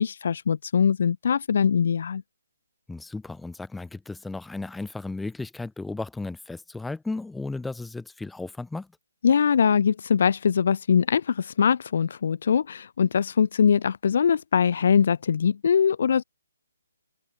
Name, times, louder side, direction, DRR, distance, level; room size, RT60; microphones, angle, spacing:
voice 1, 0.0-2.2 9.2-16.2, left 7 dB, 45° left, 1.2 m, -22 dB
voice 2, 2.9-8.9, left 3 dB, 5° left, 3.5 m, -34 dB
open air
hypercardioid pair, 175°, 0 cm